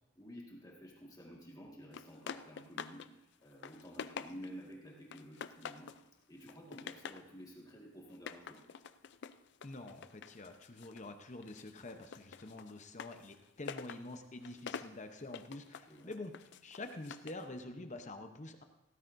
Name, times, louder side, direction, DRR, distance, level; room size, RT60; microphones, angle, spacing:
voice 1, 0.1-5.9 6.3-8.6 15.9-16.1, equal, 20° left, -2 dB, 1.8 m, -52 dB
sound 1, 1.9-3.1 3.4-4.7 5.1-6.0 6.4-7.3 8.1-11.1 11.4-17.5, left 6 dB, 55° left, 0.4 m, -47 dB
voice 2, 9.6-16.3 16.6-18.6, left 2 dB, 35° left, 6 dB, 0.8 m, -47 dB
16.0 x 13.5 x 2.7 m, 0.93 s
head